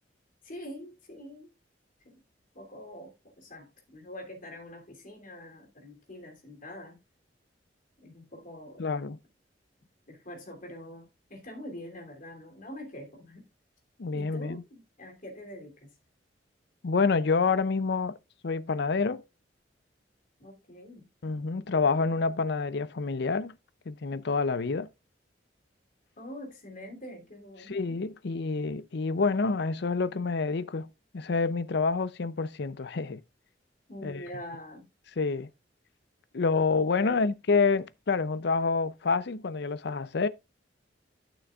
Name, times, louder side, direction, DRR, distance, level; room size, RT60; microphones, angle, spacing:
voice 1, 0.4-1.5 2.0-2.2 2.5-7.0 8.0-8.8 10.1-13.4 14.1-15.9 20.4-21.1 26.2-27.9 33.9-34.9 37.0-37.2, left 1 dB, 50° left, 3.1 m, -44 dB
voice 2, 8.8-9.2 14.0-14.6 16.8-18.2 18.4-19.2 21.2-23.5 23.9-24.9 27.7-30.9 31.1-33.2 34.0-34.2 35.2-35.5 36.3-40.3, left 4 dB, 65° left, 0.6 m, -28 dB
13.0 x 6.2 x 2.4 m
head